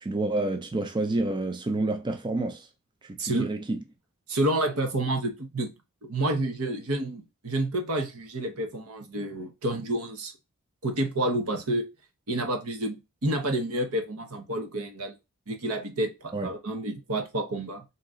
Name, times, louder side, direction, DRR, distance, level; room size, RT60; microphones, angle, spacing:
voice 1, 0.0-2.7 3.0-3.8 16.3-16.5, right 2 dB, 20° right, 0.4 m, -29 dB
voice 2, 3.2-3.5 4.3-5.7 6.0-10.3 10.8-11.8 12.3-15.1 15.5-17.8, right 1 dB, 75° right, 1.1 m, -29 dB
4.0 x 2.9 x 3.7 m
head